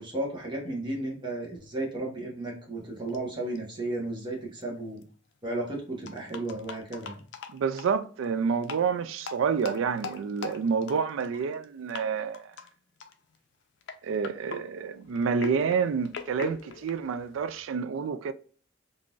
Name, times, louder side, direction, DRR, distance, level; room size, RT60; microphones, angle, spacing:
voice 1, 0.0-5.0 5.4-7.2, right 2 dB, 25° right, 0.9 m, -34 dB
sound 1, 3.1-3.2 3.6-3.7 4.6-4.7 5.0-5.1 6.1-7.9 8.6-8.9 9.2-11.6 11.9-12.0 12.3-12.7 13.0-13.4 13.8-17.6, left 5 dB, 60° left, 0.4 m, -41 dB
voice 2, 7.5-12.5 14.0-18.3, right 6 dB, 80° right, 0.3 m, -28 dB
3.7 x 2.5 x 2.3 m
head